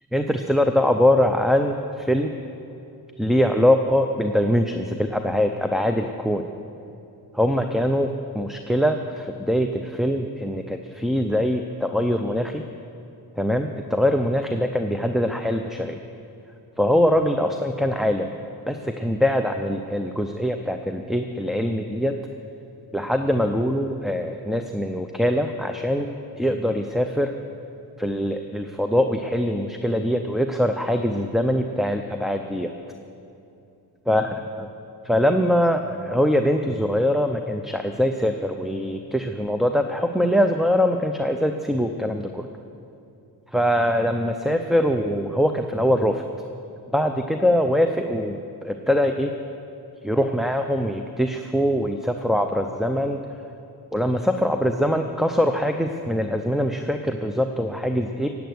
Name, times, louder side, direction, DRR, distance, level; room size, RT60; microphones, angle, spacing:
voice 1, 0.1-2.3 3.2-6.4 7.3-12.6 13.4-16.0 16.8-18.3 18.7-22.1 22.9-26.1 26.4-27.3 28.0-32.7 34.1-34.7 35.0-42.5 43.5-46.2 46.9-49.3 50.0-53.2 53.9-58.3, equal, ahead, 6 dB, 0.5 m, -23 dB
16.0 x 9.3 x 7.9 m, 2.8 s
wide cardioid pair, 135°, 39 cm